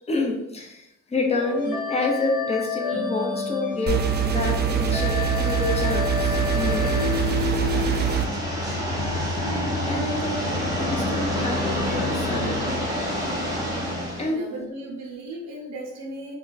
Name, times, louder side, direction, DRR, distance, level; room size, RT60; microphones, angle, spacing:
voice 1, 0.1-6.9 9.9-12.9 14.2-14.5, left 2 dB, 20° left, 1 dB, 0.6 m, -28 dB
sound 1, 1.3-11.9, left 6 dB, 90° left, 1.0 m, -31 dB
sound 2, 3.9-8.3, right 8 dB, 35° right, 0.4 m, -24 dB
sound 3, 6.2-14.3, left 1 dB, 15° right, 0.8 m, -28 dB
voice 2, 14.3-16.4, right 2 dB, 60° right, -1 dB, 0.7 m, -36 dB
2.3 x 2.2 x 3.9 m, 0.84 s
cardioid pair, 90°, 30 cm